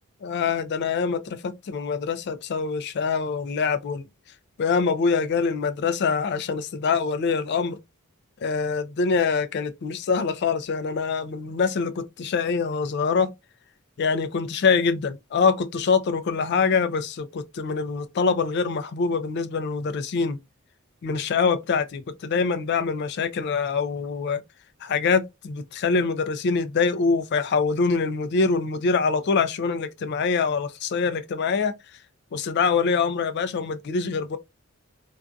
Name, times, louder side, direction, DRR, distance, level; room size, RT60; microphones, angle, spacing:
voice 1, 0.2-4.0 4.6-7.8 8.4-13.3 14.0-20.4 21.0-24.4 24.8-31.7 32.3-34.4, left 5 dB, 50° left, 0.3 m, -24 dB
2.5 x 2.2 x 2.4 m
head